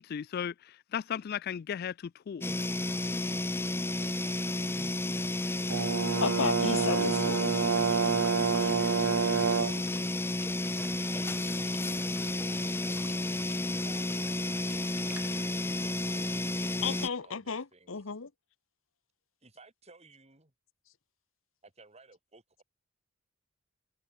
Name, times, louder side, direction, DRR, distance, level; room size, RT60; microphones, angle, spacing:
voice 1, 0.0-2.4, left 8 dB, 50° left, 0.3 m, -36 dB
sound 1, 2.4-17.1, left 2 dB, 10° left, 0.7 m, -32 dB
Brass instrument, 5.7-9.9, right 6 dB, 75° right, 0.5 m, -28 dB
voice 2, 6.2-7.5 16.8-18.3, left 5 dB, 75° left, 1.0 m, -33 dB
Water / Water tap faucet / Liquid, 7.5-17.1, right 1 dB, 10° right, 6.9 m, -54 dB
voice 3, 12.3-13.4 13.8-15.3 15.6-18.0 19.4-20.5 21.6-22.6, right 3 dB, 30° right, 4.6 m, -57 dB
head